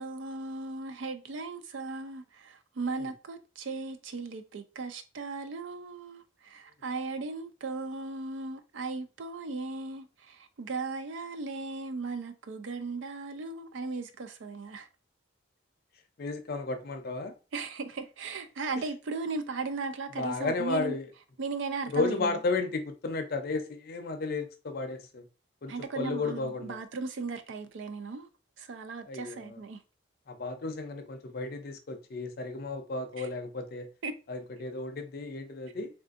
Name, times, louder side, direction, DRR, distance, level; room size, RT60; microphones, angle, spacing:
voice 1, 0.0-14.9 17.5-21.0 21.4-22.4 25.7-28.3 28.6-29.8 33.2-33.3 34.0-34.2, right 3 dB, 70° right, 0.4 m, -37 dB
voice 2, 16.2-17.3 20.2-21.0 21.9-25.2 25.6-26.8 29.1-29.6 30.3-33.9 34.3-35.9, left 3 dB, 50° left, 0.5 m, -33 dB
3.5 x 2.5 x 2.4 m
head